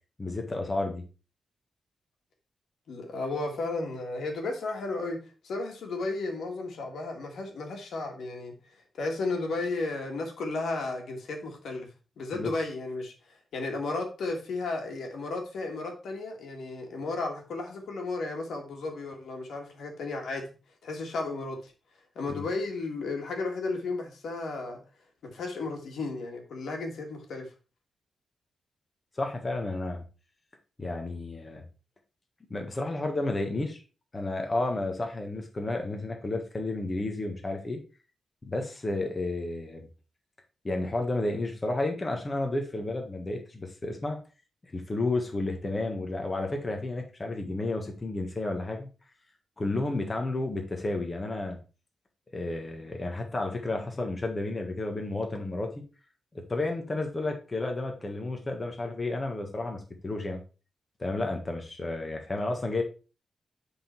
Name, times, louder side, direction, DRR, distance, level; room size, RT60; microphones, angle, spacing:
voice 1, 0.2-1.0 12.3-12.5 22.4-22.5 29.2-30.0 30.8-31.6 32.5-33.8 34.1-37.8 38.4-39.9 40.6-44.2 44.7-48.9 49.6-51.6 52.3-55.8 56.5-60.4 61.0-62.8, left 2 dB, 25° left, 1.5 m, -31 dB
voice 2, 2.9-5.2 5.4-8.5 9.0-11.9 12.2-20.4 20.8-21.7 22.2-24.8 25.2-27.5, left 3 dB, 90° left, 1.8 m, -34 dB
8.7 x 3.9 x 4.4 m
wide cardioid pair, 120°, 0 cm